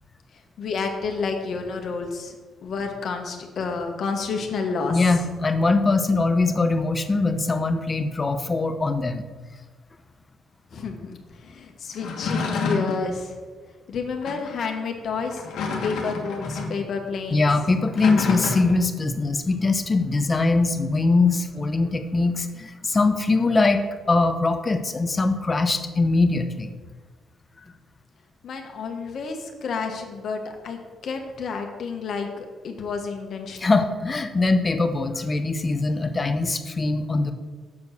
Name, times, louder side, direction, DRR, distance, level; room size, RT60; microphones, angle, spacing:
voice 1, 0.6-2.4 2.6-5.0 10.7-13.3 13.9-15.5 15.8-17.5 28.4-33.7, left 5 dB, 60° left, 3 dB, 1.2 m, -30 dB
voice 2, 4.9-9.2 17.3-26.7 33.6-37.3, left 3 dB, 30° left, 8 dB, 0.7 m, -22 dB
sound 1, 11.9-13.1 14.2-14.5 15.3-16.8 17.8-18.9, left 4 dB, 80° left, 1.2 m, -28 dB
7.0 x 4.5 x 6.6 m, 1.4 s
cardioid pair, 90°, 0 cm